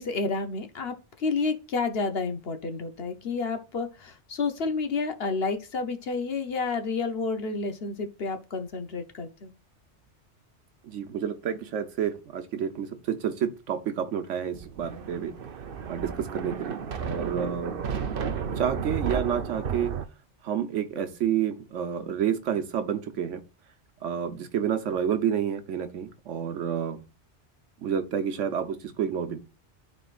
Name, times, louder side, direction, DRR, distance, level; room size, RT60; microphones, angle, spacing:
voice 1, 0.0-9.5, left 4 dB, 60° left, 1.1 m, -30 dB
voice 2, 10.8-15.3 15.9-17.8 18.6-19.9 20.4-23.4 24.0-27.0 27.8-29.4, right 8 dB, 85° right, 1.2 m, -29 dB
Thunder, 14.5-20.0, right 6 dB, 55° right, 0.9 m, -33 dB
12.5 x 4.3 x 2.5 m
omnidirectional pair, 1.2 m